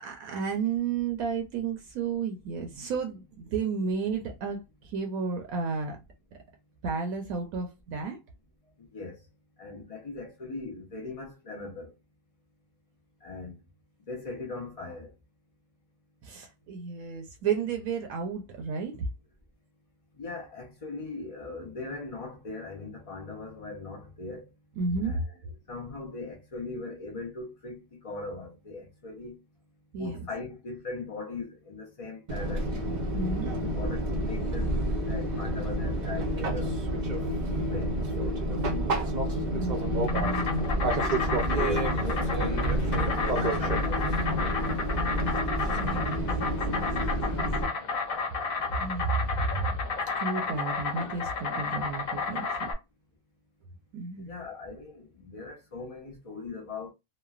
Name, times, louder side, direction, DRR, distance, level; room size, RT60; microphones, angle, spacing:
voice 1, 0.0-6.0 6.8-8.2 16.2-19.0 24.8-25.2 29.9-30.3 33.1-33.5 37.3-37.4 38.6-39.0 39.5-40.7 45.6-47.2 48.7-49.8 50.2-52.7 53.9-54.4, right 5 dB, 75° right, 1.0 m, -32 dB
voice 2, 8.8-9.2 9.6-11.9 13.2-13.5 14.1-15.1 20.2-24.5 25.0-25.4 25.7-29.4 30.0-32.7 33.5-36.8 37.5-38.0 41.5-44.8 54.2-56.9, left 3 dB, 50° left, 0.4 m, -40 dB
Fixed-wing aircraft airplane, 32.3-47.7, right 1 dB, 55° right, 0.5 m, -29 dB
Insect, 39.7-52.7, left 4 dB, 65° left, 1.1 m, -32 dB
3.0 x 2.1 x 2.3 m
omnidirectional pair, 1.5 m